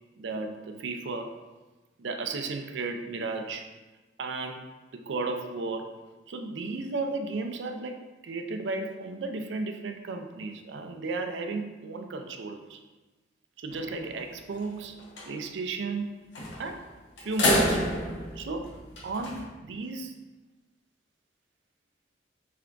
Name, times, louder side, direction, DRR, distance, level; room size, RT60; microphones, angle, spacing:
voice 1, 0.2-1.3 2.0-3.7 4.2-4.7 4.9-5.9 6.3-12.8 13.6-15.0 15.3-16.2 16.6-16.8 17.2-17.9 18.4-18.8 19.0-20.2, right 3 dB, 80° right, 6 dB, 0.4 m, -34 dB
sound 1, 13.7-14.2 14.6-14.7 15.0-15.3 16.3-16.8 17.2-19.4, left 1 dB, 85° left, 0.9 m, -28 dB
3.4 x 3.4 x 3.8 m, 1.2 s
head